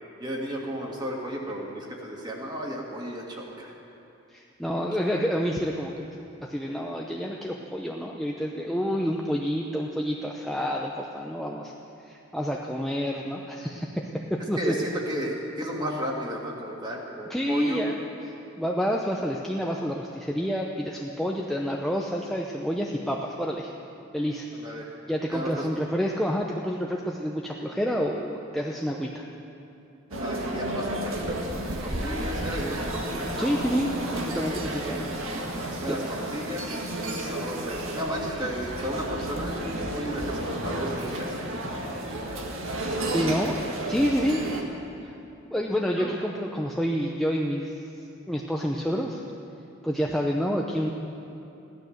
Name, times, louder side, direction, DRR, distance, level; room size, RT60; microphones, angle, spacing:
voice 1, 0.2-3.7 14.6-17.8 24.5-24.9 25.3-25.7 30.1-31.2 31.6-33.0 34.3-34.6 35.7-36.7 37.1-41.3 46.0-46.2, equal, 20° right, -2 dB, 2.1 m, -34 dB
voice 2, 4.3-6.0 6.4-11.7 12.0-14.7 17.3-18.0 18.6-23.7 24.1-24.5 25.1-29.2 33.4-35.1 35.9-36.0 42.8-43.6 43.9-44.5 45.0-45.2 45.5-47.7 48.3-49.2 49.8-50.9, equal, ahead, -1 dB, 0.6 m, -28 dB
sound 1, 30.1-44.6, right 1 dB, 85° right, 1.7 m, -32 dB
16.5 x 12.0 x 6.5 m, 2.9 s
head